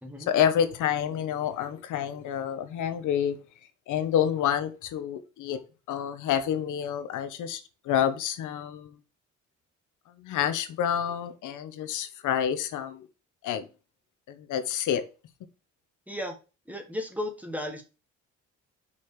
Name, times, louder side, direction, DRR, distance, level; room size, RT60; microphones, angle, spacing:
voice 1, 0.3-3.4 3.9-5.6 5.9-8.9 10.2-13.1 13.4-13.7 14.3-15.0, left 9 dB, 85° left, 1.2 m, -28 dB
voice 2, 16.7-17.8, left 1 dB, 5° right, 1.5 m, -34 dB
5.8 x 4.4 x 4.9 m
cardioid pair, 90°, 30 cm